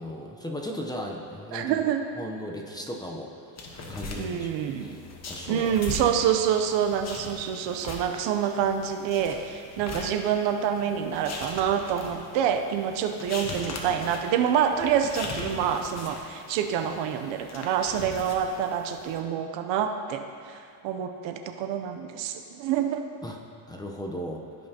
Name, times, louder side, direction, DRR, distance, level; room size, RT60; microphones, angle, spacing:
voice 1, 0.0-1.8 2.2-3.3 3.9-5.8 23.2-23.4 23.7-24.4, equal, 10° left, 0 dB, 0.7 m, -36 dB
voice 2, 1.5-2.0 4.1-5.0 5.5-23.0, right 8 dB, 65° right, 6 dB, 0.7 m, -27 dB
sound 1, 3.6-19.2, left 2 dB, 30° left, 1.2 m, -40 dB
14.5 x 5.6 x 2.9 m, 2.4 s
supercardioid pair, 105°, 50 cm